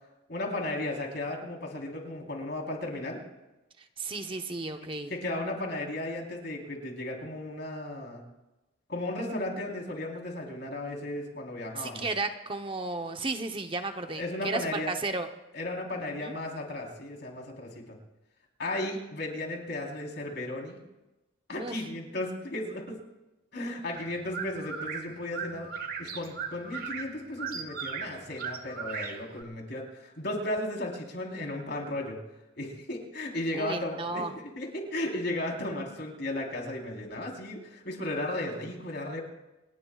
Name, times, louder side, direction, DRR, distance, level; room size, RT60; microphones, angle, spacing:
voice 1, 0.3-3.2 5.1-8.2 8.9-12.1 14.2-14.9 15.5-18.0 18.6-20.8 21.5-23.0 23.5-25.7 26.0-32.2 32.5-39.2, left 1 dB, 60° left, 0 dB, 3.9 m, -35 dB
voice 2, 4.0-5.1 11.8-15.3 16.0-16.4 21.6-21.8 33.5-34.3, right 3 dB, 25° right, 6 dB, 0.9 m, -34 dB
sound 1, 24.0-29.4, right 6 dB, 50° right, 1.5 m, -38 dB
27.5 x 19.5 x 2.4 m, 1.0 s
head